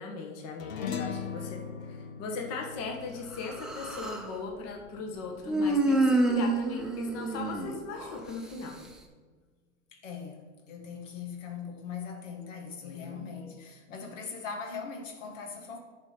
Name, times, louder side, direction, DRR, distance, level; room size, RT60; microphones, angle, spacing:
voice 1, 0.0-8.8 12.8-13.3, left 4 dB, 40° left, 2 dB, 1.6 m, -39 dB
sound 1, 0.6-5.3, left 6 dB, 90° left, 1.0 m, -40 dB
Human voice, 3.3-4.3 5.5-8.2, right 2 dB, ahead, 0.8 m, -28 dB
voice 2, 9.9-15.8, left 6 dB, 70° left, 3 dB, 1.7 m, -40 dB
10.5 x 4.5 x 5.2 m, 1.5 s
hypercardioid pair, 120°, 39 cm